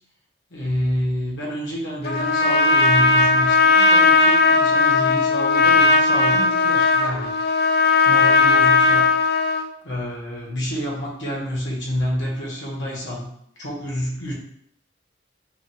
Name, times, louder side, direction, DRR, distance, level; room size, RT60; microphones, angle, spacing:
voice 1, 0.5-7.3 8.0-9.1 9.8-13.3 13.6-14.3, equal, 80° left, -4 dB, 1.5 m, -28 dB
Trumpet, 2.0-9.7, left 3 dB, 55° left, 0.3 m, -17 dB
5.2 x 2.5 x 3.6 m, 0.68 s
head